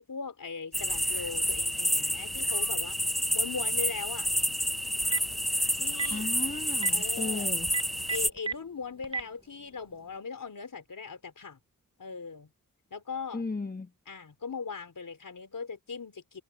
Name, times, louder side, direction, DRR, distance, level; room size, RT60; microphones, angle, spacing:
voice 1, 0.0-3.0 3.3-4.3 5.8-6.2 6.9-7.5 8.1-11.6 12.0-12.5 12.9-13.4 14.1-16.4, left 5 dB, 70° left, 4.3 m, -39 dB
sound 1, 0.7-8.3, equal, ahead, 0.3 m, -29 dB
Telephone, 4.9-5.3 5.9-6.1 6.7-6.9 7.6-8.5 9.0-9.2, right 5 dB, 15° right, 0.8 m, -31 dB
voice 2, 6.1-7.7 13.3-13.9, left 3 dB, 25° left, 1.3 m, -35 dB
cardioid pair, 40°, 34 cm